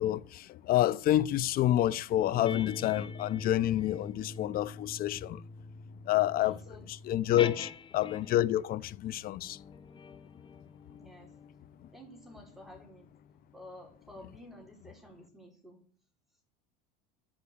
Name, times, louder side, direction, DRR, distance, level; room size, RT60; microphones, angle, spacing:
voice 1, 0.0-5.4 6.1-6.6 6.9-9.6, left 13 dB, 45° left, 0.7 m, -28 dB
sound 1, 2.2-8.6 9.3-14.3, left 4 dB, 25° left, 1.1 m, -45 dB
voice 2, 6.4-6.9 7.4-7.6 10.9-11.3 11.9-13.1 13.5-15.8, equal, ahead, 5.7 m, -52 dB
11.5 x 6.4 x 8.8 m
supercardioid pair, 105°, 21 cm